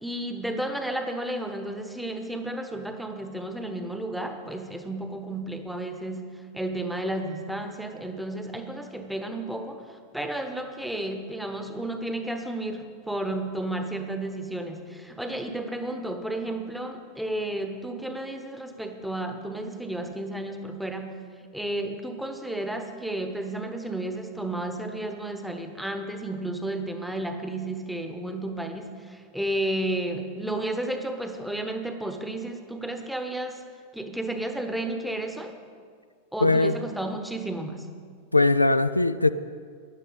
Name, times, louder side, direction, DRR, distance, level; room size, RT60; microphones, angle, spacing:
voice 1, 0.0-9.8 10.1-21.2 21.5-33.6 33.9-35.6 36.3-37.9, right 1 dB, ahead, 1.0 m, -32 dB
voice 2, 36.4-36.8 38.3-39.3, left 2 dB, 85° left, 0.3 m, -20 dB
15.0 x 11.0 x 4.1 m
figure-of-eight pair, 90°, 0 cm